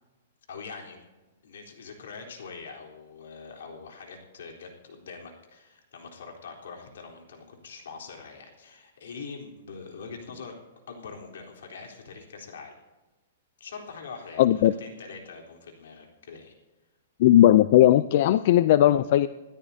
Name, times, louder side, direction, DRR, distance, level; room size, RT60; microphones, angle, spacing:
voice 1, 0.5-1.0 1.4-10.5 10.9-12.8 13.6-16.5, left 5 dB, 80° left, 1 dB, 3.8 m, -43 dB
voice 2, 14.4-14.7 17.2-19.3, left 13 dB, 50° left, 15 dB, 0.4 m, -18 dB
27.0 x 13.5 x 2.8 m, 1.2 s
hypercardioid pair, 155°, 0 cm